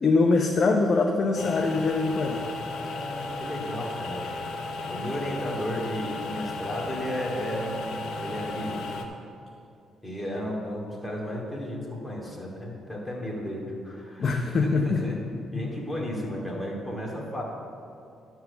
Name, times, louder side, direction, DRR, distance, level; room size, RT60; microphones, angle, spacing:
voice 1, 0.0-2.4 14.2-15.4, left 3 dB, 45° left, 2 dB, 0.7 m, -23 dB
sound 1, 1.4-9.1, left 3 dB, 80° left, 0.8 m, -35 dB
voice 2, 2.8-4.2 4.6-8.8 10.0-15.2 15.5-17.4, equal, 10° left, -3 dB, 2.4 m, -34 dB
11.0 x 4.6 x 6.8 m, 2.5 s
cardioid pair, 90°, 0 cm